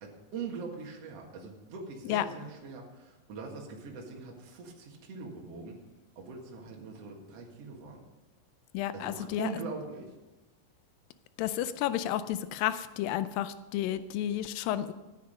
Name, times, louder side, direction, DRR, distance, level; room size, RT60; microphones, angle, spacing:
voice 1, 0.0-5.8 6.2-8.0 8.9-10.1, right 4 dB, 50° right, 0 dB, 2.6 m, -42 dB
voice 2, 8.7-9.5 11.4-14.9, left 12 dB, 85° left, 13 dB, 2.3 m, -31 dB
13.0 x 10.0 x 5.3 m, 1.1 s
omnidirectional pair, 4.0 m